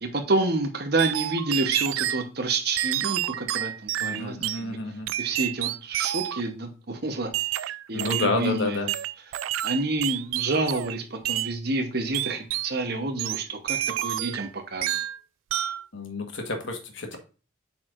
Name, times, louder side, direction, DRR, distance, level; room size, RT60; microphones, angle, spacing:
voice 1, 0.0-4.8 5.2-7.3 7.9-8.8 9.6-15.0, right 2 dB, 55° right, 4 dB, 1.0 m, -28 dB
sound 1, 1.0-2.2 2.8-4.6 5.1-6.5 7.3-8.4 8.9-11.0 11.2-11.5 12.1-12.7 13.2-14.5 14.8-15.2 15.5-15.8, right 13 dB, 90° right, 0.3 m, -29 dB
voice 2, 4.0-5.1 7.9-8.9 15.9-17.2, left 3 dB, 75° left, 4 dB, 1.3 m, -29 dB
8.3 x 4.5 x 2.5 m, 0.35 s
head